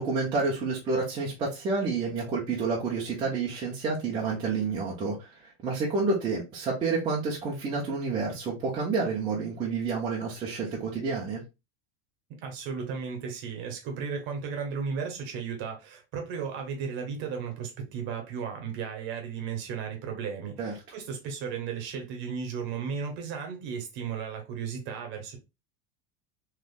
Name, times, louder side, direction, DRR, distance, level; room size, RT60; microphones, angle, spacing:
voice 1, 0.0-5.3 5.6-11.4 20.6-20.7, right 4 dB, 15° right, 0.4 m, -29 dB
voice 2, 12.4-25.4, right 6 dB, 35° right, 0.9 m, -35 dB
3.4 x 3.0 x 2.3 m
supercardioid pair, 175°, 35 cm